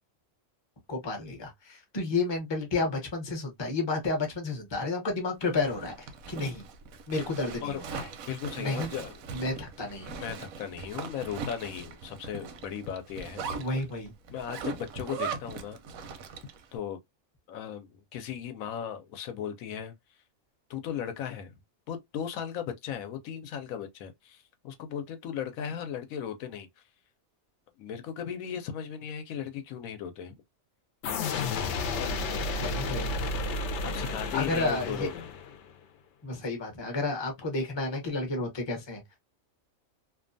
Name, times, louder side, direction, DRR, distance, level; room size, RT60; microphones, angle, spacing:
voice 1, 0.9-6.6 7.1-8.1 8.6-8.9 9.3-10.1 13.6-14.1 32.6-33.1 33.8-35.1 36.2-39.2, left 3 dB, 25° left, 0.7 m, -31 dB
Zipper (clothing), 5.4-16.7, right 5 dB, 90° right, 1.0 m, -40 dB
voice 2, 8.3-9.2 10.2-13.5 14.3-15.8 16.7-17.0 17.5-19.9 20.7-21.6 21.9-26.7 27.8-30.4 31.4-32.1 33.8-35.3, left 8 dB, 85° left, 1.1 m, -37 dB
sound 1, 31.0-35.7, left 3 dB, 65° left, 0.8 m, -32 dB
2.7 x 2.2 x 2.5 m
omnidirectional pair, 1.4 m